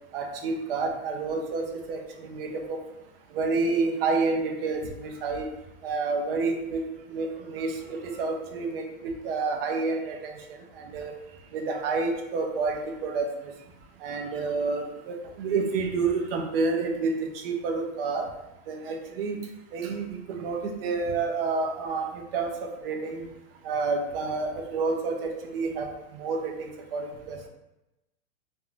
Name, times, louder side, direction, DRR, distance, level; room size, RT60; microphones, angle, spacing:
voice 1, 0.1-2.8 3.3-5.5 5.8-6.8 7.1-10.3 10.9-11.1 11.5-13.3 14.0-17.1 17.4-18.3 18.7-19.4 19.7-23.3 23.6-25.9 26.2-27.5, right 4 dB, 45° right, 3 dB, 0.5 m, -29 dB
2.4 x 2.2 x 3.0 m, 0.96 s
hypercardioid pair, 140°, 41 cm